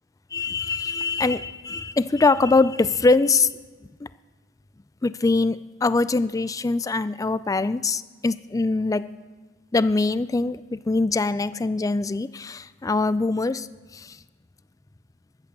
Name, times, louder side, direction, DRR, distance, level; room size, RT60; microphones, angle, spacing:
voice 1, 0.3-3.5 4.0-4.1 5.0-9.0 9.7-13.7 13.9-14.2, left 3 dB, 20° left, 15 dB, 0.3 m, -23 dB
13.5 x 9.0 x 6.8 m, 1.4 s
head